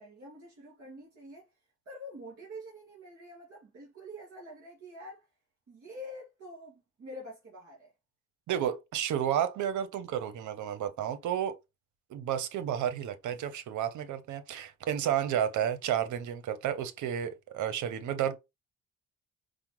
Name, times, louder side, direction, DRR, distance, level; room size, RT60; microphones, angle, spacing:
voice 1, 0.0-1.5 1.9-5.3 5.7-7.9, equal, 55° right, 2.2 m, -46 dB
voice 2, 8.5-11.6 12.1-18.4, right 10 dB, 75° right, 0.7 m, -31 dB
4.9 x 2.1 x 3.0 m
cardioid pair, 90°, 30 cm